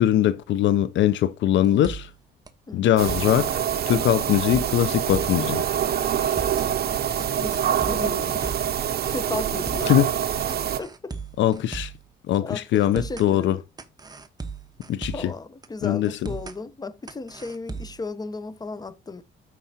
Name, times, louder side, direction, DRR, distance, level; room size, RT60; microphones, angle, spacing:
voice 1, 0.0-2.1 2.7-3.6 3.9-5.6 9.9-10.1 11.4-11.9 12.3-13.6 14.9-15.3 15.8-16.3, left 11 dB, 70° left, 0.5 m, -21 dB
sound 1, 1.6-2.2 2.5-2.6 2.9-3.4 3.9-5.5 5.8-5.9 6.2-6.7 7.2-8.8 9.0-9.1 9.5-10.0 10.5-12.1 12.3-12.4 12.8-13.3 13.8-15.4 15.6-15.7 16.0-16.6 17.1-18.0, right 4 dB, 20° right, 1.0 m, -37 dB
sound 2, 3.0-10.8, right 9 dB, 55° right, 0.7 m, -25 dB
voice 2, 7.2-9.9 10.5-11.1 12.4-13.6 15.1-19.2, left 3 dB, 20° left, 0.7 m, -35 dB
13.0 x 4.7 x 2.8 m
cardioid pair, 90°, 20 cm